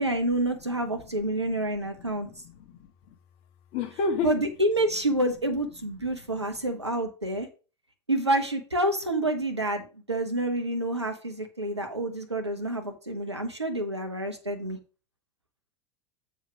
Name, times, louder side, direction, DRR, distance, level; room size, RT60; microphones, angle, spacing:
voice 1, 0.0-2.3 4.2-7.5 8.1-14.8, right 1 dB, 90° right, 1.0 m, -28 dB
voice 2, 1.4-2.3 2.5-3.1 3.7-4.3, left 4 dB, 45° left, 1.6 m, -32 dB
7.2 x 5.0 x 4.9 m
figure-of-eight pair, 85°, 14 cm